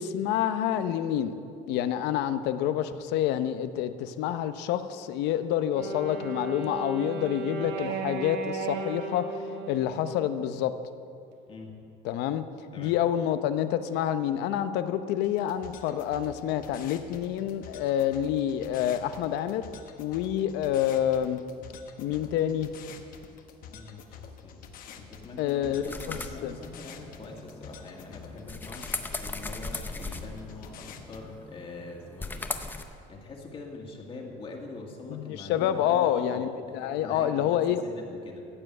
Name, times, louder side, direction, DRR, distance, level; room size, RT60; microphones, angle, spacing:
voice 1, 0.0-1.3 1.7-9.3 9.7-10.7 12.0-12.4 12.8-19.6 20.0-21.4 22.0-22.7 25.4-26.6 35.1-37.9, left 10 dB, 80° left, 11 dB, 0.8 m, -28 dB
Wind instrument woodwind instrument, 5.7-10.8, right 4 dB, 80° right, 1.5 m, -35 dB
voice 2, 11.5-11.9 12.7-12.9 23.7-24.1 24.4-24.6 24.9-32.4 33.1-36.5 36.8-38.4, left 3 dB, 30° left, 0 dB, 1.9 m, -43 dB
sound 1, 15.2-31.2, left 7 dB, 55° left, 1.1 m, -48 dB
hand scrub soap squishy rub shake wet dog, 25.8-32.8, left 3 dB, 10° left, 0.7 m, -39 dB
14.5 x 7.8 x 7.9 m, 2.5 s
cardioid pair, 155°, 17 cm